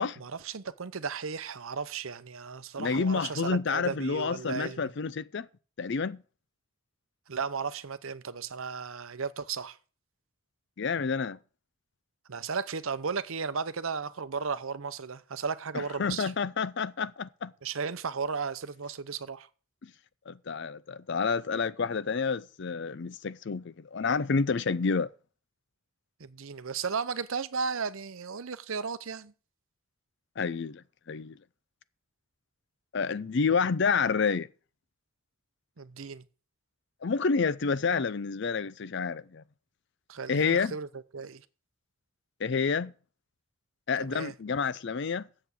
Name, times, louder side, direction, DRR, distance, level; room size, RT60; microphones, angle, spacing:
voice 1, 0.2-4.9 7.3-9.8 12.3-16.3 17.6-19.5 26.2-29.3 35.8-36.2 40.1-40.9 41.1-41.4 44.0-44.3, right 5 dB, 70° right, 0.7 m, -35 dB
voice 2, 2.8-5.5 5.8-6.2 10.8-11.4 15.7-17.5 19.8-19.9 20.3-25.1 30.4-31.4 32.9-34.5 37.0-39.4 40.3-40.8 42.4-42.9 43.9-45.3, left 5 dB, 55° left, 0.5 m, -29 dB
7.7 x 7.0 x 8.4 m
head